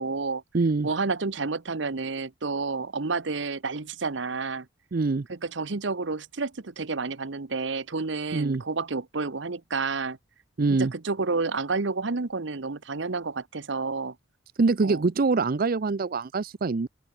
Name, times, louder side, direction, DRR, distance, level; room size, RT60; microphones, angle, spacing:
voice 1, 0.0-0.4 0.8-4.7 5.3-10.2 10.7-14.1 14.8-15.0, right 4 dB, 65° right, 1.0 m, -30 dB
voice 2, 0.5-0.9 4.9-5.3 8.3-8.6 10.6-10.9 14.6-16.9, right 3 dB, 50° right, 0.5 m, -24 dB
open air
head